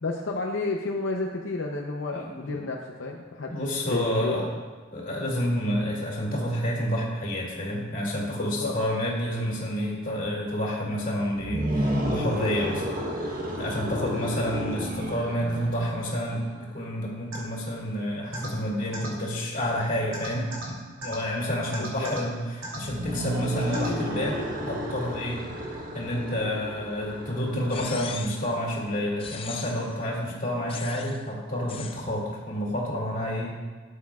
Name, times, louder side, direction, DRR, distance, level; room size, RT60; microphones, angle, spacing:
voice 1, 0.0-4.5 8.4-8.8 21.8-22.1, left 2 dB, 80° left, 0 dB, 0.7 m, -31 dB
voice 2, 2.1-2.6 3.5-4.5 4.9-22.3 22.6-33.5, equal, 45° left, -4 dB, 2.3 m, -29 dB
sound 1, 11.4-16.6 22.8-28.5, equal, 45° right, 1.1 m, -32 dB
sound 2, 17.3-17.4 18.3-18.5 18.9-19.1 20.1-20.7 21.0-21.2 21.7-22.2 22.6-22.8 23.7-23.9, right 2 dB, 85° right, 2.9 m, -35 dB
sound 3, 27.7-28.5 29.2-29.9 30.7-31.2 31.7-32.1, left 6 dB, 30° left, 0.4 m, -39 dB
13.0 x 8.5 x 2.4 m, 1.4 s
head